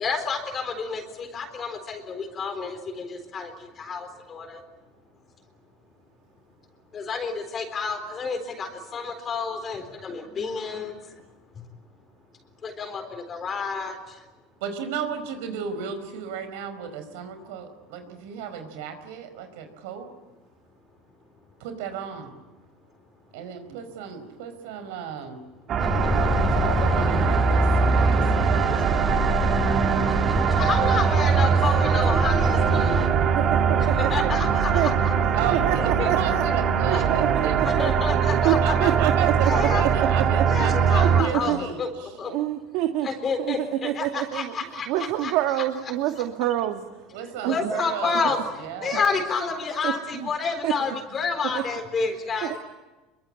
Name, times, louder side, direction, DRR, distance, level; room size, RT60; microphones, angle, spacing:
voice 1, 0.0-4.6 6.9-11.2 11.6-11.7 12.6-14.2 30.5-33.1 33.8-35.1 36.0-36.1 36.9-37.2 37.7-38.9 39.4-39.8 40.5-42.3 43.0-45.3 47.4-48.4 48.8-52.6, left 5 dB, 25° left, 6 dB, 4.0 m, -30 dB
voice 2, 14.6-20.1 21.6-22.4 23.3-25.4 26.4-27.7 27.9-29.3 31.5-31.6 31.9-32.0 35.3-37.9 38.4-42.1 47.1-48.3 48.6-49.2, right 7 dB, 80° right, 9 dB, 4.9 m, -34 dB
sound 1, 25.7-41.2, right 7 dB, 35° right, 2.1 m, -22 dB
sound 2, 25.8-33.1, left 1 dB, ahead, 4.5 m, -25 dB
voice 3, 33.2-34.3 34.7-34.9 35.5-36.4 36.9-37.9 38.4-41.6 42.2-43.1 43.4-44.5 44.9-46.8 47.4-47.7 49.8-50.3 50.6-50.7 51.4-51.6 52.4-52.6, right 13 dB, 60° right, 6 dB, 1.6 m, -27 dB
26.5 x 23.5 x 8.8 m, 1.1 s
cardioid pair, 150°, 0 cm